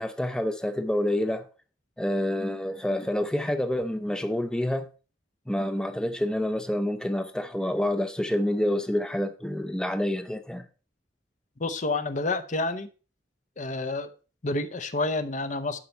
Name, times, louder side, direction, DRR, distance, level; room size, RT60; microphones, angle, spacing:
voice 1, 0.0-1.5 2.0-4.9 5.5-10.7, left 1 dB, 5° left, 0.6 m, -28 dB
voice 2, 11.6-12.9 13.6-14.1 14.4-15.8, left 2 dB, 45° left, 0.8 m, -29 dB
11.5 x 5.4 x 4.5 m
head